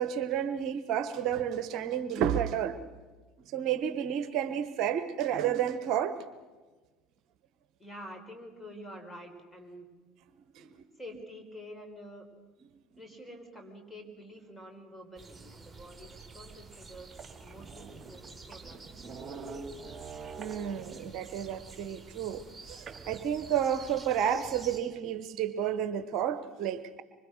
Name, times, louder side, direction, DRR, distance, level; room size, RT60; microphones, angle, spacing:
voice 1, 0.0-2.8 3.4-6.3 10.5-10.8 20.4-27.0, right 9 dB, 50° right, 13 dB, 1.0 m, -31 dB
voice 2, 7.8-9.9 10.6-12.3 13.0-17.1 17.4-18.9, equal, 15° left, 5 dB, 5.3 m, -48 dB
sound 1, 15.2-24.8, right 4 dB, 10° right, 4.6 m, -50 dB
sound 2, 16.2-16.3 16.8-16.9 17.1-21.2 22.9-23.9, right 4 dB, 30° right, 2.3 m, -46 dB
25.5 x 25.0 x 6.6 m, 1.3 s
figure-of-eight pair, 65°, 0 cm